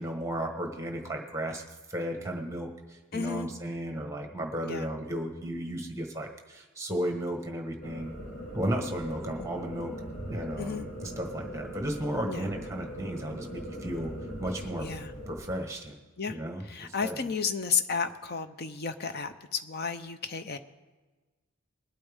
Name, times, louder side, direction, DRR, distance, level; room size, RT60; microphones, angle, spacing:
voice 1, 0.0-1.6 1.9-2.7 3.1-8.1 8.5-9.9 10.3-14.1 14.4-14.9 15.3-15.9 16.3-17.2, right 1 dB, 15° right, 3 dB, 1.3 m, -34 dB
voice 2, 3.1-3.5 4.6-4.9 9.4-9.5 10.6-10.9 12.2-12.5 14.8-15.1 16.2-16.4 16.6-20.6, left 5 dB, 45° left, 10 dB, 0.7 m, -32 dB
sound 1, 7.8-15.4, equal, 65° left, 3.3 m, -40 dB
21.0 x 8.7 x 3.6 m, 1.3 s
head